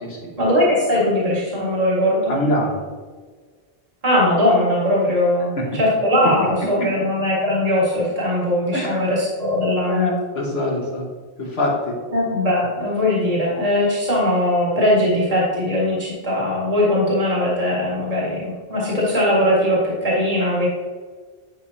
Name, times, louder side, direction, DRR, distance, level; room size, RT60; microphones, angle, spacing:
voice 1, 0.4-2.3 4.0-10.1 12.1-20.7, left 1 dB, 35° right, -6 dB, 1.9 m, -20 dB
voice 2, 2.3-2.8 5.6-5.7 8.7-9.0 9.9-11.1 11.4-11.9, left 1 dB, 80° left, -2 dB, 1.8 m, -24 dB
10.0 x 5.1 x 2.8 m, 1.5 s
omnidirectional pair, 1.1 m